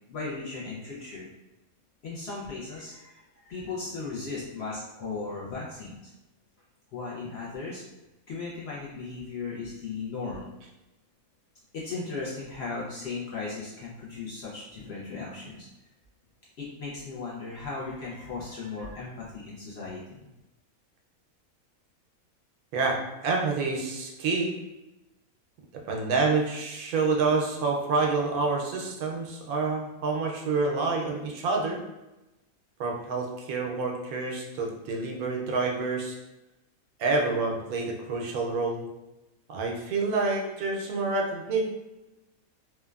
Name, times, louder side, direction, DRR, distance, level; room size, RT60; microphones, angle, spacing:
voice 1, 0.1-1.3 2.0-6.1 6.9-7.8 8.3-10.5 11.7-15.7 16.6-20.3, left 4 dB, 65° left, -5 dB, 0.6 m, -37 dB
voice 2, 22.7-24.5 25.9-31.8 32.8-36.2 37.0-38.9 39.5-41.6, right 3 dB, 90° right, 0 dB, 1.1 m, -28 dB
3.1 x 2.1 x 2.3 m, 1.0 s
omnidirectional pair, 1.5 m